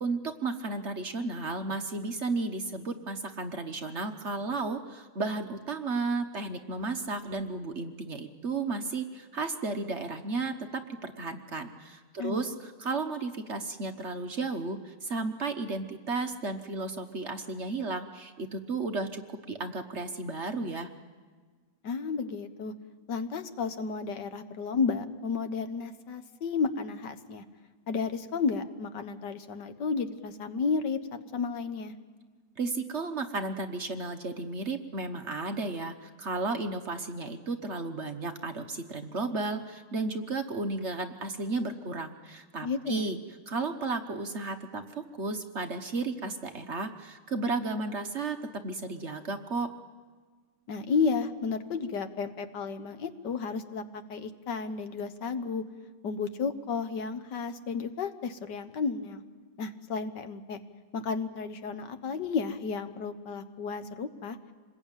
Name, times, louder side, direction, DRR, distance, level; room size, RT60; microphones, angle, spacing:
voice 1, 0.0-20.9 32.6-43.2 43.5-48.4 48.6-49.7, right 3 dB, 45° right, 6 dB, 1.2 m, -33 dB
voice 2, 12.2-12.6 21.8-22.7 23.1-27.4 27.9-31.0 31.3-31.9 42.6-43.1 50.7-55.6 56.0-59.2 59.6-60.6 60.9-64.4, left 5 dB, 70° left, 9 dB, 1.8 m, -32 dB
26.5 x 21.0 x 9.0 m, 1.5 s
omnidirectional pair, 1.9 m